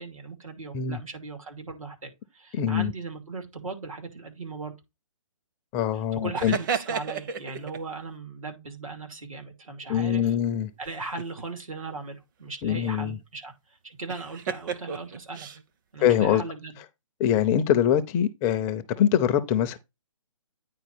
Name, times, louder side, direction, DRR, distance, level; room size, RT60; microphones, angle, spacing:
voice 1, 0.0-4.7 6.1-10.3 10.8-13.5 13.8-15.5 15.9-16.8, right 3 dB, 85° right, 2.7 m, -38 dB
voice 2, 2.5-2.9 5.7-6.6 9.9-10.7 12.6-13.2 16.0-16.4 17.2-19.8, left 9 dB, 15° left, 0.4 m, -23 dB
sound 1, 6.3-7.8 10.8-11.4 14.1-15.6, right 6 dB, 40° right, 0.8 m, -32 dB
9.2 x 4.4 x 4.3 m
hypercardioid pair, 150°, 17 cm